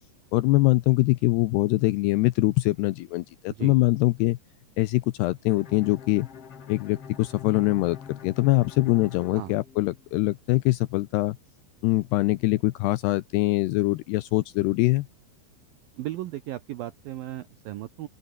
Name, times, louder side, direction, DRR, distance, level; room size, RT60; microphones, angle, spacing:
voice 1, 0.3-4.4 4.8-6.3 6.7-11.4 11.8-15.1, left 19 dB, 90° left, 2.4 m, -23 dB
Bowed string instrument, 5.5-10.3, left 7 dB, 40° left, 2.5 m, -44 dB
voice 2, 16.0-18.1, right 14 dB, 85° right, 2.0 m, -36 dB
omnidirectional pair, 5.4 m